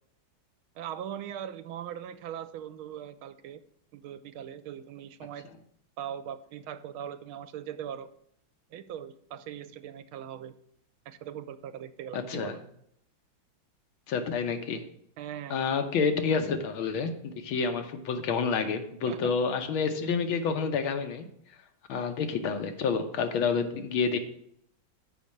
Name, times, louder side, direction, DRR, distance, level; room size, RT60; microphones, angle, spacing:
voice 1, 0.8-3.6 3.9-5.5 6.0-8.1 8.7-10.5 11.1-12.6 15.2-15.6 19.1-19.3, right 9 dB, 85° right, 11 dB, 1.5 m, -40 dB
voice 2, 12.1-12.6 14.1-14.8 15.5-21.3 21.9-24.2, left 5 dB, 75° left, 7 dB, 1.7 m, -29 dB
6.9 x 5.3 x 7.3 m, 0.70 s
omnidirectional pair, 2.3 m